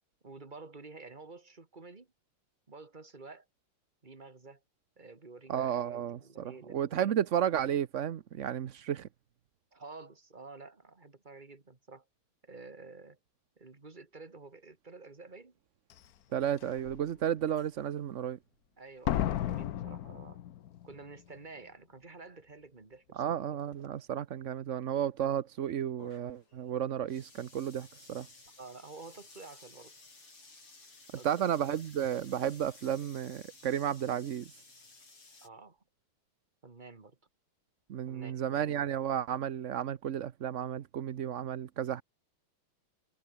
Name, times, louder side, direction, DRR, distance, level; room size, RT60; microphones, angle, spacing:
voice 1, 0.2-2.1 2.7-3.5 4.0-4.6 5.0-7.1 9.7-12.0 12.4-13.2 13.6-15.6 18.8-20.4 20.8-23.4 28.6-30.0 31.1-31.8 35.4-35.8 36.6-37.2 38.1-38.9, right 3 dB, 20° right, 2.1 m, -50 dB
voice 2, 5.5-9.1 16.3-18.4 23.1-28.3 31.2-34.5 37.9-42.0, right 9 dB, 70° right, 0.7 m, -33 dB
Slam, 15.9-16.0 16.6-17.0 19.1-20.9 21.2-21.3, left 11 dB, 65° left, 1.0 m, -33 dB
sound 1, 26.0-35.5, left 3 dB, 80° left, 7.5 m, -56 dB
omnidirectional pair, 2.4 m